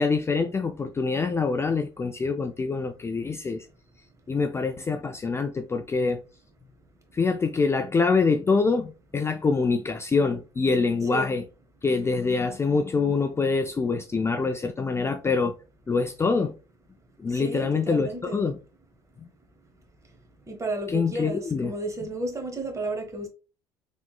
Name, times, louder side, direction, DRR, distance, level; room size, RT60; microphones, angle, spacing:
voice 1, 0.0-3.7 4.3-6.2 7.1-11.4 11.8-15.5 15.9-16.5 17.2-18.6 20.9-21.7, left 4 dB, 20° left, 0.3 m, -25 dB
voice 2, 11.0-11.4 17.3-18.4 20.5-23.3, right 2 dB, 25° right, 1.0 m, -33 dB
3.6 x 3.0 x 2.2 m
hypercardioid pair, 60°, 13 cm